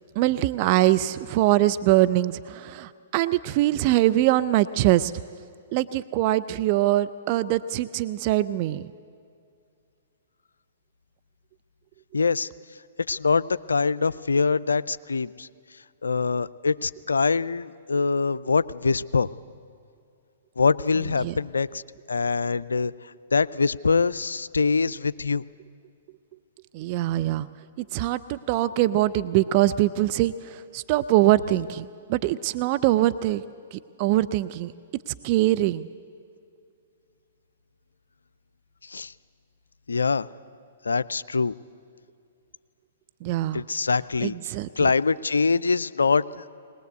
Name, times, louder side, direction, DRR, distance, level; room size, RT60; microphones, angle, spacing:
voice 1, 0.2-5.1 5.7-8.9 21.2-21.4 26.7-27.5 27.9-33.4 33.7-34.7 35.1-35.9 43.2-43.6 44.2-44.9, right 15 dB, 40° right, 13 dB, 0.5 m, -23 dB
voice 2, 12.1-12.5 13.1-15.5 16.0-19.3 20.6-21.8 22.1-22.9 23.3-25.4 38.8-39.1 39.9-40.3 40.8-41.5 43.5-44.3 44.8-46.4, left 4 dB, 85° left, 17 dB, 0.4 m, -24 dB
21.0 x 19.5 x 8.1 m, 2.4 s
hypercardioid pair, 125°, 0 cm